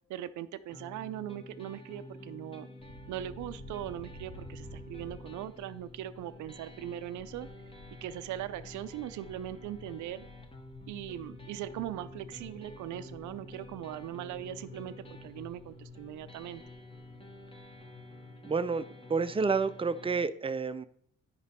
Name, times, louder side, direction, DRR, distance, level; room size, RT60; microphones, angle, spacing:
voice 1, 0.1-2.7 3.1-7.5 8.0-10.2 10.9-14.9 15.2-16.6, right 12 dB, 75° right, 12 dB, 0.5 m, -40 dB
sound 1, 0.7-20.3, left 1 dB, 20° left, 1.2 m, -50 dB
sound 2, 2.8-18.6, left 1 dB, 75° left, 3.2 m, -53 dB
voice 2, 18.4-18.8 19.1-20.9, right 4 dB, 20° right, 11 dB, 0.5 m, -29 dB
9.8 x 5.2 x 4.1 m, 0.64 s
cardioid pair, 90°, 30 cm